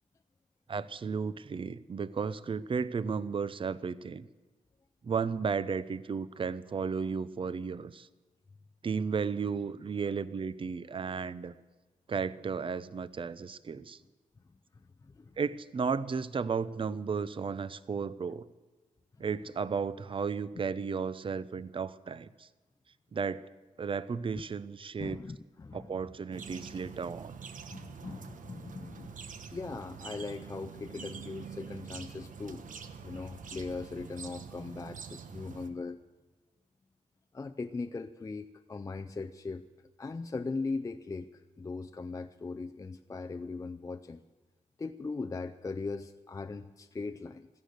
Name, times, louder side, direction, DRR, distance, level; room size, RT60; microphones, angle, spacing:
voice 1, 0.7-4.3 5.0-8.1 8.8-11.5 12.1-14.0 15.4-18.4 19.2-22.5 23.1-23.4 23.8-25.2 25.7-27.3, right 5 dB, 40° right, 17 dB, 0.6 m, -34 dB
voice 2, 14.7-15.4 25.0-25.9 27.7-29.2 29.5-32.7 33.0-36.0 37.3-39.6 40.0-44.2 44.8-47.5, left 3 dB, 25° left, 8 dB, 0.4 m, -39 dB
sound 1, 26.3-35.7, right 6 dB, 70° right, 1.1 m, -46 dB
16.5 x 13.0 x 6.6 m, 1.3 s
wide cardioid pair, 135°, 14 cm